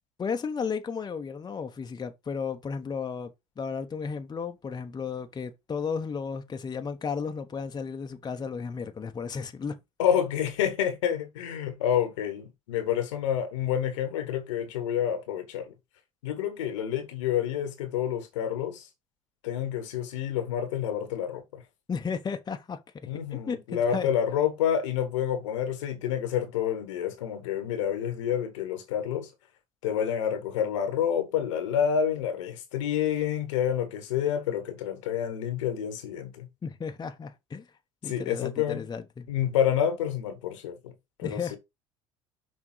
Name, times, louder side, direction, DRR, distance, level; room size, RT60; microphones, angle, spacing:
voice 1, 0.2-9.8 21.9-22.8 23.3-24.1 36.6-37.7 38.0-39.3 41.2-41.6, left 6 dB, 25° left, 0.9 m, -34 dB
voice 2, 10.0-15.7 16.2-18.9 19.4-21.6 23.1-29.3 29.8-36.5 38.0-38.8 39.3-40.9 41.2-41.6, left 9 dB, 75° left, 1.3 m, -28 dB
6.0 x 3.6 x 4.6 m
hypercardioid pair, 65°, 16 cm